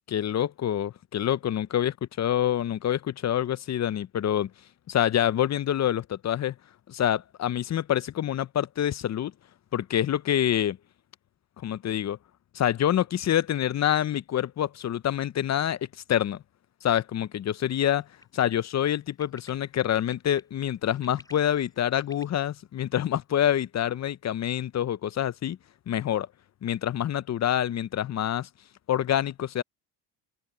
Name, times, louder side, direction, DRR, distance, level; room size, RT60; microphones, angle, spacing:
voice 1, 0.1-4.5 4.9-6.5 6.9-9.3 9.7-10.8 11.6-12.2 12.5-15.8 16.1-16.4 16.8-18.1 18.3-25.6 25.9-26.3 26.6-28.5 28.9-29.6, left 10 dB, 40° left, 0.7 m, -26 dB
Bird, 18.2-18.5 19.2-19.5 20.1-20.4 20.9-22.2, left 1 dB, 10° left, 5.9 m, -50 dB
open air
supercardioid pair, 80°, 42 cm